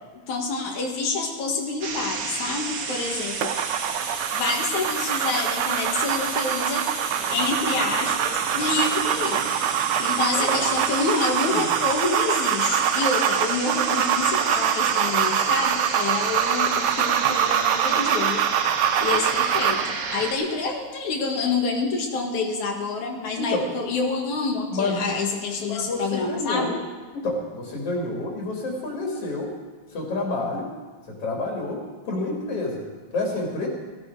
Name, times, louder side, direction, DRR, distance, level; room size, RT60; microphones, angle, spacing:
voice 1, 0.3-3.6 4.3-6.9 7.3-9.5 10.0-18.5 19.0-26.7, left 3 dB, 75° left, 1 dB, 3.2 m, -27 dB
sound 1, 1.8-20.3, right 5 dB, 55° right, 2.1 m, -31 dB
sound 2, 3.4-19.9, right 9 dB, 80° right, 1.2 m, -24 dB
sound 3, 7.1-11.3, right 3 dB, 40° right, 2.5 m, -43 dB
voice 2, 23.3-23.7 24.7-25.1 25.7-26.8 27.1-29.5 29.9-30.7 31.2-32.8 33.1-33.7, left 2 dB, 50° left, -1 dB, 3.6 m, -28 dB
18.0 x 15.5 x 4.8 m, 1.3 s
omnidirectional pair, 3.4 m